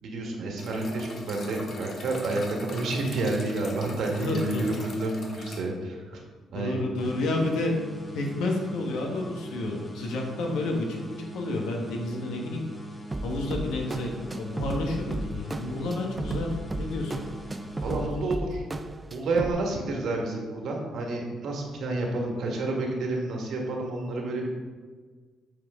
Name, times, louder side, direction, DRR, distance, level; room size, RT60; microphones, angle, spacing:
voice 1, 0.0-6.2 6.5-6.8 17.8-18.6 19.1-24.5, right 2 dB, 70° right, 0 dB, 1.4 m, -29 dB
sound 1, 0.6-5.6, left 2 dB, 55° left, 1.1 m, -42 dB
voice 2, 4.2-4.8 6.5-7.7 8.1-12.7 13.2-16.5 16.8-17.1, left 2 dB, 85° left, 1 dB, 1.2 m, -30 dB
sound 2, 7.0-18.7, equal, 20° left, 1.0 m, -42 dB
sound 3, 13.1-19.5, right 1 dB, 20° right, 0.4 m, -34 dB
8.0 x 4.3 x 3.6 m, 1.5 s
cardioid pair, 90°, 0 cm